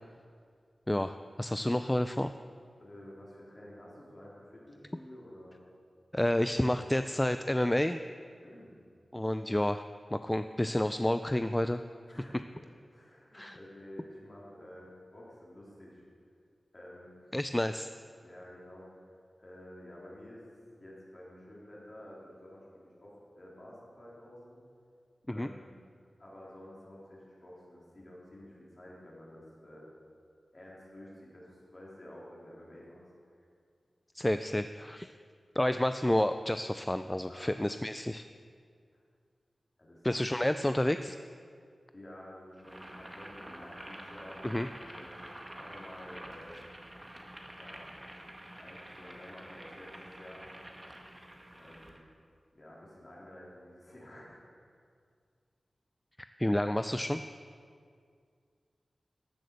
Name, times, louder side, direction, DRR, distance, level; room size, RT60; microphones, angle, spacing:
voice 1, 0.9-2.3 6.1-8.0 9.1-9.8 10.1-11.8 13.3-13.6 17.3-17.9 25.3-25.5 34.1-35.1 35.6-38.3 40.0-41.2 44.4-44.7 56.4-57.2, left 1 dB, 10° left, 10 dB, 0.3 m, -30 dB
voice 2, 2.8-5.6 8.4-8.8 12.1-16.0 16.7-17.3 18.2-18.9 19.4-20.5 20.8-24.6 25.3-25.8 26.2-29.9 30.5-33.1 33.4-33.5 37.3-37.5 38.9-39.0 39.8-40.1 41.9-44.5 44.9-46.6 47.6-50.5 51.5-52.0 52.5-54.4, left 1 dB, 35° left, -5 dB, 3.8 m, -51 dB
Boiling, 42.6-52.0, right 1 dB, 15° right, 1.4 m, -48 dB
13.5 x 8.4 x 6.6 m, 2.2 s
wide cardioid pair, 105°, 0 cm